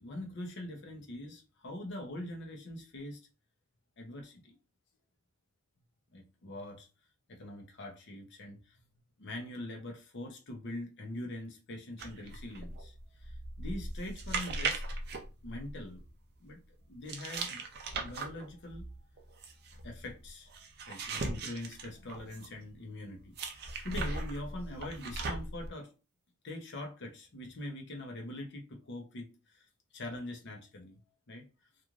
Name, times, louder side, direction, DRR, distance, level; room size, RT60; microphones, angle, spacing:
voice 1, 0.0-3.2 4.0-4.5 6.1-6.9 7.3-8.8 9.2-14.8 15.4-16.0 16.4-16.6 16.9-17.6 18.0-18.9 19.8-20.5 20.9-25.9 26.4-29.6 29.9-31.0 31.3-31.5, left 1 dB, 50° left, 0.7 m, -43 dB
sound 1, 12.0-16.1 17.1-22.6 23.3-25.7, right 3 dB, 45° right, 0.5 m, -39 dB
3.0 x 2.4 x 2.4 m
head